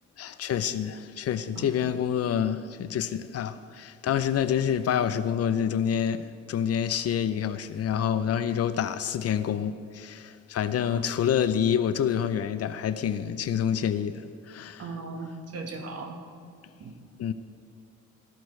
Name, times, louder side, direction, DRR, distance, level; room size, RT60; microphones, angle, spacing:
voice 1, 0.2-14.8 17.2-17.3, left 9 dB, 55° left, 0.6 m, -27 dB
voice 2, 14.8-16.2 16.8-17.0, right 3 dB, 55° right, 1.4 m, -38 dB
13.5 x 13.5 x 3.2 m
cardioid pair, 90°, 30 cm